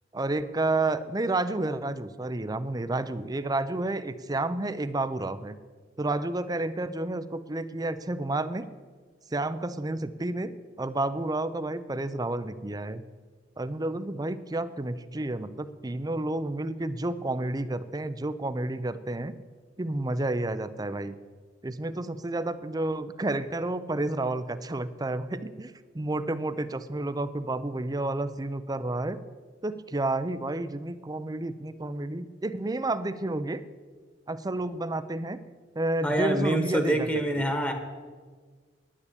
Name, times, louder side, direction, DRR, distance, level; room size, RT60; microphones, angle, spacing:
voice 1, 0.1-5.6 6.0-8.7 9.3-13.0 13.6-19.3 19.8-21.2 21.6-29.2 29.6-33.6 34.3-35.4 35.8-37.1 37.4-37.5, right 2 dB, 20° right, 13 dB, 0.5 m, -30 dB
voice 2, 36.0-37.7, right 1 dB, 10° left, 5 dB, 1.3 m, -26 dB
10.0 x 9.8 x 8.3 m, 1.5 s
head